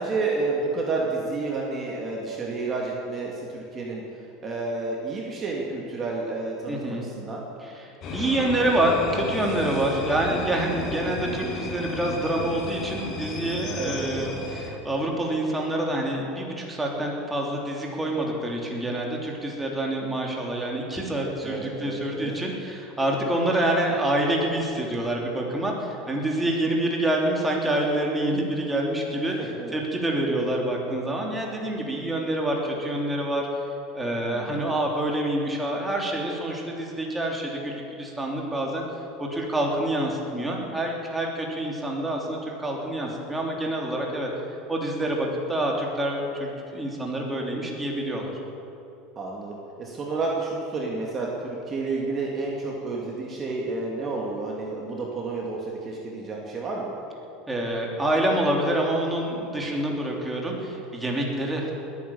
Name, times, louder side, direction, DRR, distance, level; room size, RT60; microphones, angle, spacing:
voice 1, 0.0-4.0 4.4-7.4 13.8-14.5 21.4-22.3 29.4-29.7 34.3-34.6 49.2-56.9, right 3 dB, 30° right, -2 dB, 2.6 m, -30 dB
voice 2, 6.7-7.1 7.6-33.5 33.9-38.8 39.2-44.3 44.7-48.3 57.5-61.7, right 1 dB, 10° right, -1 dB, 3.3 m, -27 dB
sound 1, 8.0-14.7, left 2 dB, 45° left, 3.5 m, -33 dB
20.5 x 9.6 x 7.2 m, 2.8 s
supercardioid pair, 110°, 0 cm